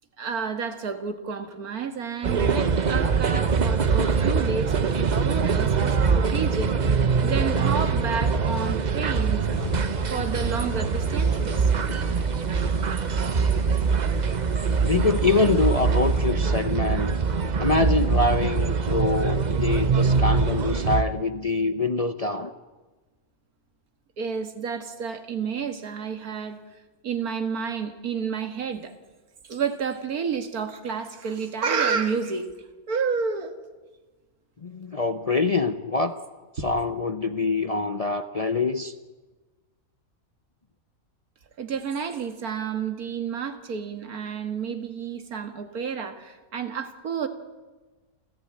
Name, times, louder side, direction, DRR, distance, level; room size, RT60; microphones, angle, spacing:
voice 1, 0.2-9.6 10.1-11.7 24.2-26.6 27.0-29.0 29.4-32.5 32.9-33.6 36.6-36.7 41.6-47.3, right 6 dB, 85° right, 8 dB, 2.2 m, -30 dB
walking around Superbooth, 2.2-21.0, right 5 dB, 35° right, 0.8 m, -23 dB
sound 1, 9.5-16.2, left 2 dB, 50° left, 2.3 m, -40 dB
voice 2, 14.8-17.2 17.6-22.5 34.6-36.2 36.6-38.9, left 3 dB, 35° left, 9 dB, 0.6 m, -25 dB
28.5 x 14.5 x 8.8 m, 1.2 s
omnidirectional pair, 1.5 m